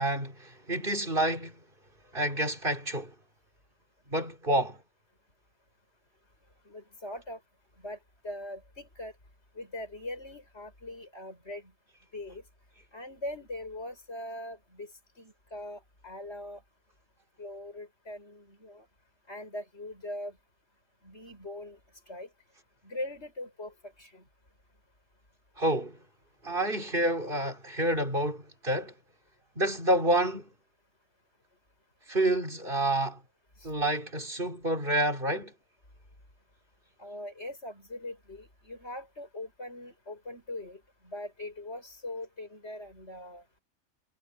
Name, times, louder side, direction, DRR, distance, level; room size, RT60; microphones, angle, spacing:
voice 1, 0.0-1.6 2.1-3.1 4.1-4.8 25.6-26.0 26.4-28.9 29.5-30.5 32.1-33.2 33.6-35.5, right 1 dB, 40° right, 5.1 m, -28 dB
voice 2, 6.7-7.4 7.8-8.0 8.2-9.1 9.5-11.7 12.1-12.4 12.9-14.9 15.2-16.6 17.4-18.8 19.3-20.4 21.0-21.8 22.1-22.3 22.8-24.2 33.6-33.7 37.0-43.4, left 1 dB, 50° left, 8.3 m, -41 dB
omnidirectional pair, 1.4 m